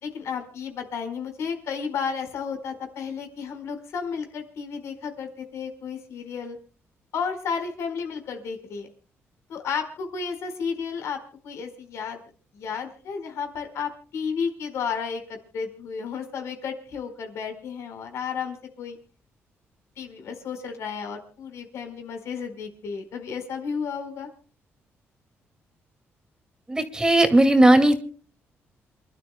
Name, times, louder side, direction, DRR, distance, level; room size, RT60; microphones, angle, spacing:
voice 1, 0.0-6.6 7.1-8.9 9.5-11.2 11.4-12.2 12.5-19.0 20.0-24.3, left 6 dB, 75° left, 5 dB, 4.7 m, -32 dB
voice 2, 26.7-28.0, right 1 dB, 15° right, 7 dB, 2.2 m, -17 dB
28.5 x 12.5 x 2.2 m, 0.40 s
cardioid pair, 110°, 5 cm